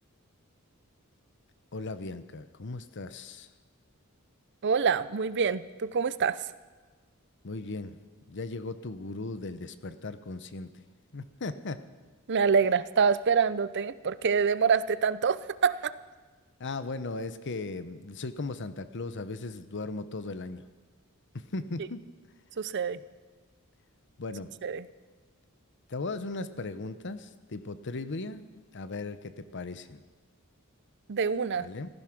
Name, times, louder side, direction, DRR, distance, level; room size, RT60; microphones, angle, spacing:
voice 1, 1.7-3.5 7.4-8.0 8.3-10.8 11.1-11.8 16.6-20.6 21.3-22.0 24.2-24.5 25.9-28.5 28.7-30.0 31.6-31.9, left 3 dB, 55° left, 12 dB, 0.9 m, -37 dB
voice 2, 4.6-6.4 12.3-15.9 22.6-23.0 24.6-24.9 31.1-31.7, right 6 dB, 55° right, 16 dB, 0.6 m, -26 dB
15.5 x 15.0 x 6.1 m, 1.3 s
head